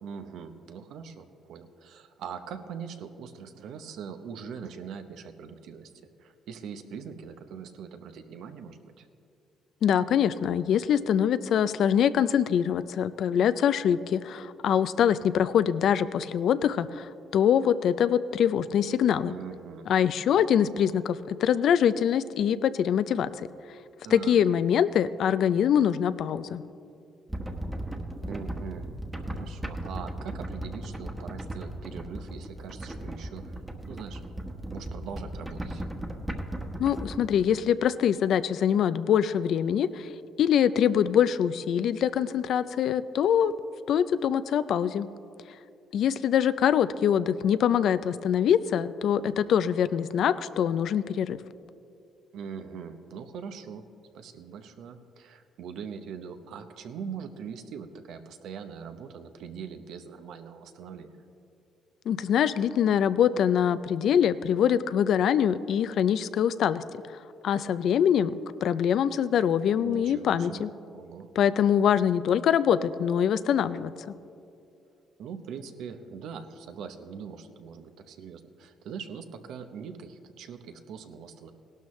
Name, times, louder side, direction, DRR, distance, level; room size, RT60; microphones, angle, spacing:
voice 1, 0.0-9.1 19.2-19.9 24.0-24.4 28.3-28.9 29.2-33.6 33.9-34.2 34.7-35.9 52.3-53.8 54.1-61.1 69.8-70.7 70.9-71.3 75.2-81.5, right 6 dB, 75° right, 8 dB, 0.8 m, -42 dB
voice 2, 9.8-19.3 19.9-23.5 24.1-26.6 36.8-40.1 40.4-43.5 43.9-45.1 45.9-51.4 62.1-66.8 67.4-68.3 68.6-70.7 71.4-74.1, left 9 dB, 70° left, 15 dB, 0.4 m, -24 dB
sound 1, 27.3-37.4, right 1 dB, 15° right, 1.2 m, -37 dB
17.0 x 12.0 x 3.2 m, 2.6 s
cardioid pair, 85°, 0 cm